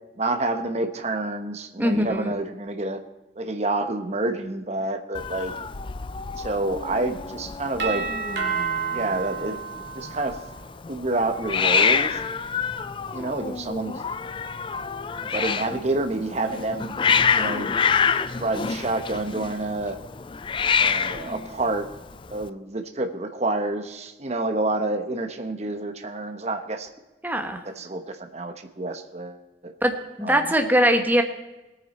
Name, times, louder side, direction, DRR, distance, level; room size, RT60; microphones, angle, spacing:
voice 1, 0.2-3.0 3.4-5.5 6.4-8.1 8.9-10.4 10.9-12.2 13.1-14.0 15.3-16.9 17.3-17.8 18.4-20.0 20.8-21.9 22.3-26.9 27.6-29.7 30.2-30.5, right 2 dB, 40° right, 6 dB, 0.9 m, -28 dB
voice 2, 1.8-2.3 27.2-27.6 29.8-29.9 30.2-31.2, equal, 10° right, 5 dB, 1.1 m, -21 dB
Hiss, 5.1-22.5, left 6 dB, 30° left, 0.4 m, -27 dB
Doorbell, 7.8-10.6, right 6 dB, 70° right, 2.5 m, -30 dB
20.0 x 9.3 x 4.2 m, 1.1 s
head